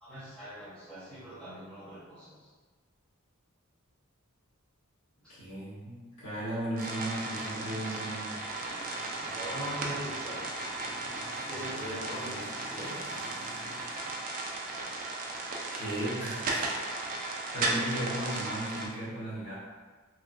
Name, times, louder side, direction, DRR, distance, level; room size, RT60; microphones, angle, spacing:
voice 1, 0.0-2.4 9.2-10.4 11.5-13.1, equal, 5° left, -13 dB, 1.1 m, -41 dB
voice 2, 5.3-8.4 15.7-16.7 17.1-19.5, right 1 dB, 75° left, -10 dB, 1.3 m, -36 dB
sound 1, 6.8-18.9, right 2 dB, 40° right, 0.4 m, -36 dB
Motorcycle / Engine, 8.3-14.1, equal, 30° left, 1.0 m, -47 dB
3.1 x 2.4 x 2.5 m, 1.4 s
head